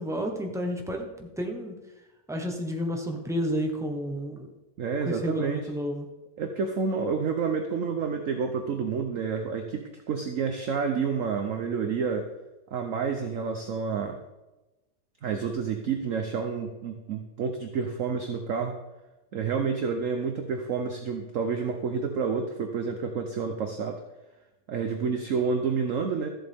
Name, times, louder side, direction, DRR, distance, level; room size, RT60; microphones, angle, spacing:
voice 1, 0.0-1.8 2.3-4.5 5.1-6.1, equal, ahead, 2 dB, 0.8 m, -31 dB
voice 2, 4.8-5.7 6.4-12.3 12.7-14.2 15.2-18.8 19.3-24.0 24.7-26.3, right 5 dB, 55° right, 5 dB, 1.0 m, -29 dB
14.0 x 7.6 x 3.6 m, 1.0 s
omnidirectional pair, 1.9 m